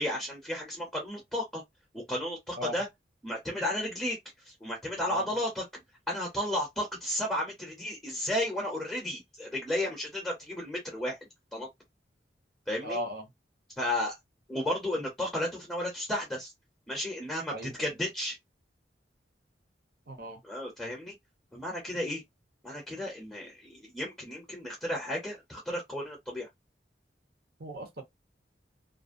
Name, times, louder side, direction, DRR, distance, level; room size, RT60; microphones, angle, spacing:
voice 1, 0.0-1.6 1.9-2.9 3.2-4.2 4.6-5.6 6.1-11.2 11.5-11.7 12.7-13.0 13.8-14.2 14.5-16.5 16.9-18.4 20.4-21.1 21.5-22.2 22.6-26.5, left 1 dB, 5° left, 0.6 m, -33 dB
voice 2, 12.8-13.2 17.5-17.7 20.1-20.4 27.6-28.0, equal, 55° right, 0.8 m, -36 dB
2.5 x 2.0 x 2.5 m
head